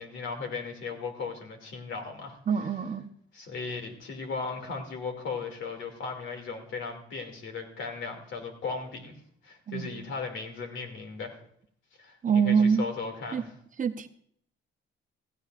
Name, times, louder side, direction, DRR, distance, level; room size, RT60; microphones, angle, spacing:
voice 1, 0.0-2.7 3.3-9.1 9.4-11.4 12.0-13.5, left 4 dB, 75° left, 5 dB, 2.6 m, -37 dB
voice 2, 2.5-3.1 9.7-10.0 12.2-12.8 13.3-13.4 13.8-14.1, right 6 dB, 40° right, 9 dB, 0.9 m, -25 dB
16.5 x 15.0 x 2.5 m, 0.64 s
cardioid pair, 90°, 20 cm